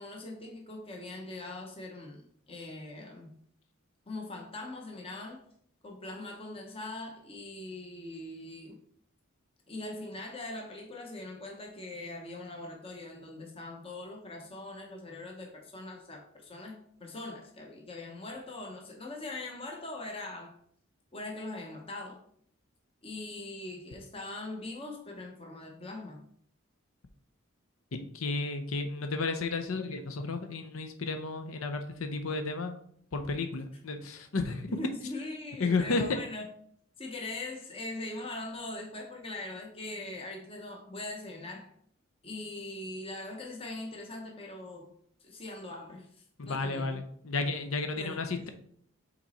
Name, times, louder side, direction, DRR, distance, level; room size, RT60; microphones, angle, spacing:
voice 1, 0.0-3.4 4.1-5.4 5.8-8.8 9.7-20.5 21.1-22.2 23.0-26.2 34.7-36.5 37.0-41.7 42.2-44.9 45.2-46.1 46.5-47.0 48.0-48.4, left 2 dB, 25° left, 0.9 m, -41 dB
voice 2, 27.9-32.8 33.1-34.7 35.6-36.2 46.4-48.5, left 3 dB, 80° left, 0.7 m, -32 dB
5.9 x 4.1 x 4.1 m
head